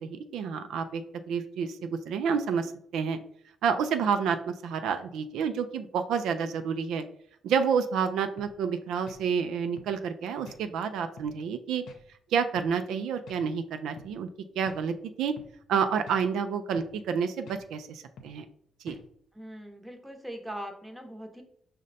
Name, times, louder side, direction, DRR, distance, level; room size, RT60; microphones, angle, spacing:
voice 1, 0.0-1.0 1.3-3.2 3.6-7.0 7.4-11.8 12.3-14.3 14.6-15.3 15.7-18.4 18.8-19.0, right 6 dB, 80° right, 8 dB, 0.3 m, -29 dB
sound 1, 8.4-8.6 9.1-9.2 9.8-9.9 10.5-10.6 11.2-11.4 11.9-12.0 12.6-12.7 13.3-13.5 14.0-14.1 14.7-14.8 15.4-15.5 16.1-16.3 16.8-17.0 17.5-17.6 18.2-18.4 18.9-19.1, left 3 dB, 70° left, 0.7 m, -48 dB
voice 2, 19.3-21.4, equal, 5° right, 3 dB, 0.8 m, -41 dB
5.0 x 2.1 x 4.0 m, 0.67 s
cardioid pair, 90°, 0 cm